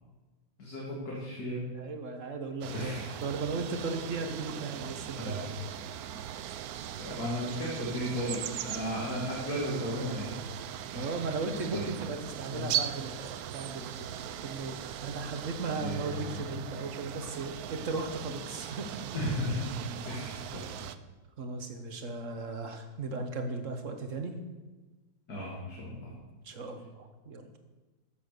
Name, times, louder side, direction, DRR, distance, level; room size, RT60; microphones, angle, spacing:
voice 1, 0.6-1.6 2.7-3.1 5.2-5.4 7.0-10.4 10.9-11.1 11.7-11.8 12.5-12.7 15.7-16.4 19.1-19.7 20.1-20.8 25.3-26.1, equal, 55° left, -4 dB, 2.8 m, -35 dB
voice 2, 1.7-5.5 10.9-19.0 21.4-24.4 26.4-27.5, right 3 dB, 45° right, 6 dB, 1.5 m, -36 dB
sound 1, 2.6-21.0, right 10 dB, 65° right, 1.0 m, -39 dB
13.0 x 7.7 x 6.7 m, 1.2 s
omnidirectional pair, 2.0 m